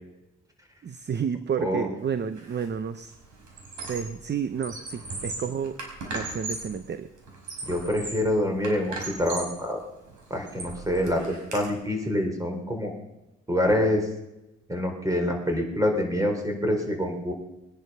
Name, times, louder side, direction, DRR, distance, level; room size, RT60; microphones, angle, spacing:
voice 1, 0.8-3.1 3.9-5.8 6.1-7.1, right 7 dB, 35° right, 11 dB, 0.8 m, -31 dB
Squeak, 2.4-2.7 3.0-4.2 4.5-6.8 7.3-8.3 8.6-9.6 10.1-11.6, right 2 dB, 70° right, 5.2 m, -37 dB
voice 2, 7.7-9.8 10.3-12.9 13.5-14.0 14.7-17.3, left 1 dB, 10° right, 3 dB, 4.0 m, -26 dB
21.0 x 10.5 x 5.6 m, 0.96 s
cardioid pair, 90°, 30 cm